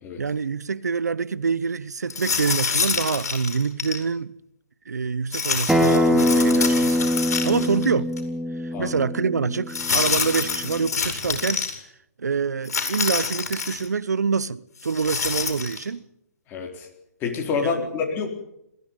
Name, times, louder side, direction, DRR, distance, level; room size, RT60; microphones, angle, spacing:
voice 1, 0.2-4.3 4.9-7.0 7.4-8.1 8.8-11.7 12.2-16.0 17.6-17.9, right 5 dB, 85° right, 0.9 m, -26 dB
sound 1, 2.1-4.0 5.3-7.9 8.2-8.3 9.7-11.7 12.6-13.9 14.8-15.8, left 5 dB, 70° left, 5.6 m, -27 dB
Acoustic guitar, 5.7-10.9, left 1 dB, 5° right, 1.5 m, -23 dB
voice 2, 16.5-16.9 17.2-18.3, left 5 dB, 25° left, 4.1 m, -27 dB
21.5 x 15.5 x 9.1 m
hypercardioid pair, 140°, 9 cm